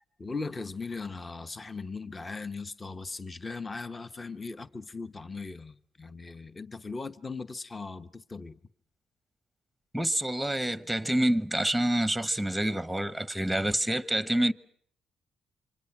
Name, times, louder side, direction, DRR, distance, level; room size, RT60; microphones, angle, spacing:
voice 1, 0.2-8.6, left 4 dB, 25° left, 1.0 m, -38 dB
voice 2, 9.9-14.5, right 1 dB, ahead, 1.0 m, -27 dB
29.0 x 25.0 x 5.9 m
cardioid pair, 90°, 0 cm